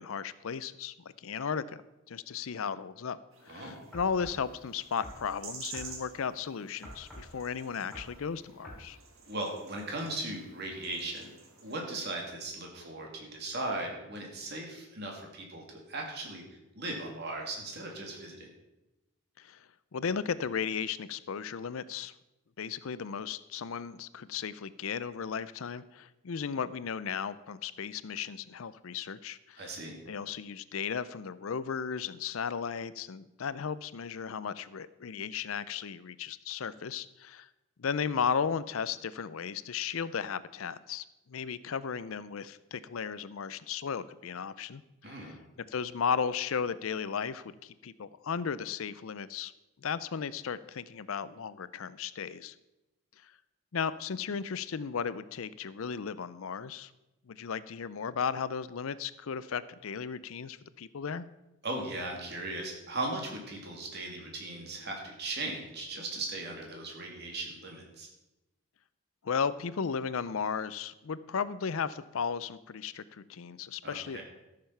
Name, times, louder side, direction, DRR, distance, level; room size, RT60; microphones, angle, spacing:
voice 1, 0.0-1.8 2.1-3.2 3.5-9.0 19.4-22.1 22.6-29.8 30.1-37.5 37.8-45.3 45.7-49.5 49.8-52.5 53.2-53.3 53.7-56.9 57.3-61.3 69.2-74.2, left 6 dB, 70° left, 16 dB, 0.5 m, -35 dB
sound 1, 3.3-11.8, right 5 dB, 70° right, 1.8 m, -50 dB
voice 2, 3.5-3.8 9.3-11.3 11.6-16.4 16.7-18.5 29.6-30.0 45.0-45.4 61.6-68.1 73.8-74.2, right 2 dB, 50° right, 1 dB, 2.5 m, -38 dB
sound 2, 3.9-4.4 5.0-5.3 5.7-6.0 6.8-7.3 7.9-8.2 8.6-8.9, equal, 5° right, 3.6 m, -46 dB
13.5 x 6.8 x 5.6 m, 0.98 s
head